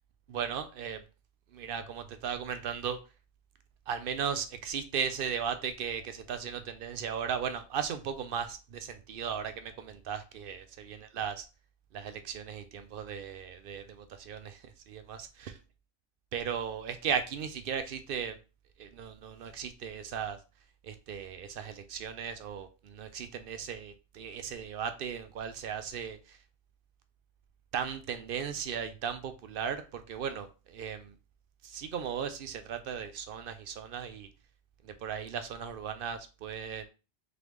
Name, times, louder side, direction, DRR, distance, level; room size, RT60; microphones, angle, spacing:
voice 1, 0.3-1.0 1.5-3.0 3.9-11.5 11.9-15.6 16.3-18.4 18.8-20.4 20.8-26.4 27.7-31.1 31.6-34.3 34.8-36.9, right 7 dB, 65° right, 0.7 m, -36 dB
3.8 x 3.4 x 3.0 m
omnidirectional pair, 1.1 m